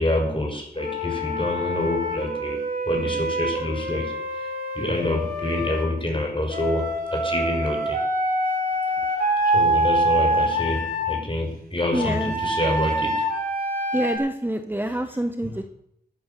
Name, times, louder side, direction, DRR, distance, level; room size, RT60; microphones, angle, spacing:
voice 1, 0.0-8.0 9.1-13.3 15.4-15.5, left 1 dB, 30° left, 2 dB, 6.1 m, -27 dB
Wind instrument woodwind instrument, 0.8-5.8 6.5-11.2 11.9-14.2, right 1 dB, 60° right, 5.7 m, -25 dB
voice 2, 11.9-12.3 13.9-15.7, right 1 dB, 10° right, 7 dB, 1.3 m, -26 dB
14.0 x 10.0 x 7.1 m, 0.73 s
cardioid pair, 50°, 17 cm